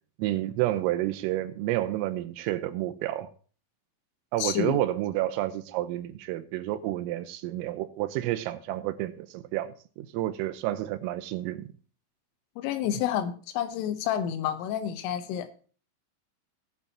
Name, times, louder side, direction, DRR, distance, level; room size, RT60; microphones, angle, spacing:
voice 1, 0.2-3.3 4.3-11.7, right 14 dB, 85° right, 3.5 m, -30 dB
voice 2, 4.4-4.8 12.6-15.7, left 10 dB, 80° left, 3.4 m, -29 dB
19.5 x 6.9 x 2.8 m
omnidirectional pair, 5.8 m